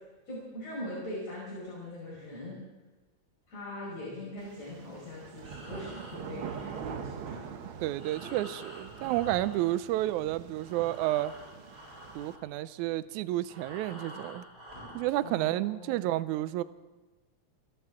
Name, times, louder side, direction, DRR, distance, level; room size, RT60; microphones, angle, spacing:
voice 1, 0.3-2.6 3.5-7.5 8.2-8.3 15.2-16.2, left 1 dB, 60° left, -5 dB, 6.2 m, -41 dB
sound 1, 4.4-12.4, right 7 dB, 65° right, 1.3 m, -44 dB
Breathing, 5.3-10.3 10.5-15.2, equal, 20° right, 7.5 m, -49 dB
voice 2, 7.8-11.3 12.2-14.4 14.9-16.6, right 15 dB, 80° right, 15 dB, 2.0 m, -30 dB
29.0 x 12.5 x 3.7 m, 1.2 s
omnidirectional pair, 3.5 m